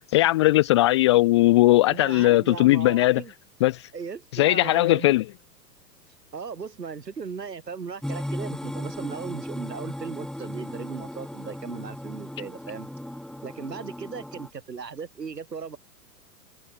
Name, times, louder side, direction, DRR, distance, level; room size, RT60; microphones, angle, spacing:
voice 1, 0.0-3.2 3.6-3.8 4.3-5.2, left 17 dB, 20° left, 0.3 m, -19 dB
voice 2, 1.9-3.3 3.9-5.1 6.3-12.9 13.4-15.8, right 5 dB, 85° right, 7.4 m, -37 dB
sound 1, 8.0-14.5, left 1 dB, ahead, 1.4 m, -36 dB
hypercardioid pair, 110°, 48 cm